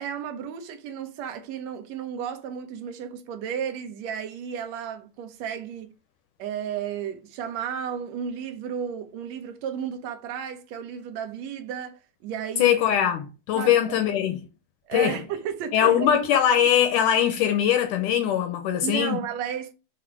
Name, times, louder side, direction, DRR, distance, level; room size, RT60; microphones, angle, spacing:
voice 1, 0.0-5.9 6.4-12.8 13.5-14.0 14.8-16.2 18.8-19.7, right 8 dB, 70° right, 1.7 m, -33 dB
voice 2, 12.6-14.4 14.9-15.2 15.7-19.2, left 10 dB, 80° left, 1.9 m, -21 dB
7.0 x 3.9 x 4.7 m
omnidirectional pair, 4.4 m